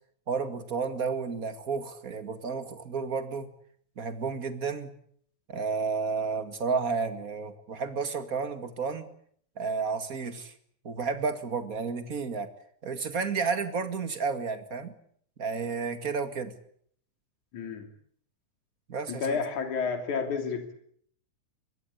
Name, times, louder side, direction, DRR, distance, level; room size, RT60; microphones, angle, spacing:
voice 1, 0.3-3.5 4.0-4.9 5.5-9.1 9.6-10.5 10.8-12.5 12.8-14.9 15.4-16.5 18.9-19.4, right 5 dB, 30° right, 9 dB, 2.2 m, -31 dB
voice 2, 17.5-17.9 19.1-20.7, left 5 dB, 75° left, 6 dB, 4.5 m, -30 dB
25.0 x 21.5 x 8.4 m, 0.63 s
omnidirectional pair, 3.4 m